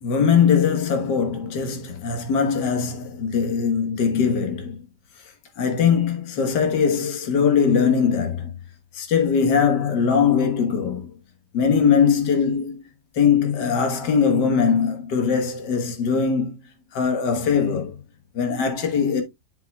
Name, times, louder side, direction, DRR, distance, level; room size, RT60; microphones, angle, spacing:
voice 1, 0.0-4.8 5.6-8.5 8.9-11.1 11.5-12.8 13.2-16.6 16.9-18.0 18.4-19.2, left 6 dB, 75° left, 1.9 m, -21 dB
7.5 x 7.3 x 2.3 m
omnidirectional pair, 1.9 m